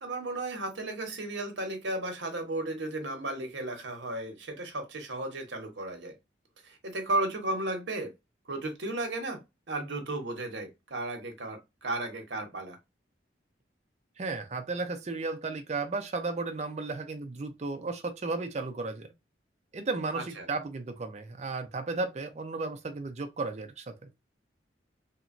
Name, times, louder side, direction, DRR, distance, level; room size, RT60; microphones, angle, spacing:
voice 1, 0.0-6.2 6.6-8.1 8.5-9.4 9.7-12.8 20.1-20.5, right 2 dB, 75° right, 0.8 m, -34 dB
voice 2, 14.2-19.1 19.7-24.1, right 3 dB, 35° right, 0.4 m, -34 dB
2.9 x 2.2 x 2.4 m
head